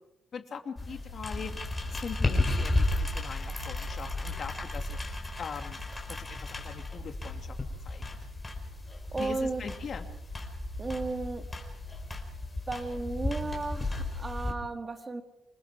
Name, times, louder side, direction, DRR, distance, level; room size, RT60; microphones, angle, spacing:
voice 1, 0.3-1.5 1.9-5.0 5.4-5.8 6.1-7.6 7.8-8.2 9.2-10.1, left 6 dB, 50° left, 6 dB, 2.5 m, -41 dB
sound 1, 0.8-14.5, left 2 dB, 20° left, 4.6 m, -34 dB
voice 2, 9.1-9.6 10.8-11.5 12.7-15.2, right 3 dB, 25° right, 7 dB, 1.8 m, -34 dB
27.5 x 19.5 x 4.9 m, 0.85 s
cardioid pair, 90°, 0 cm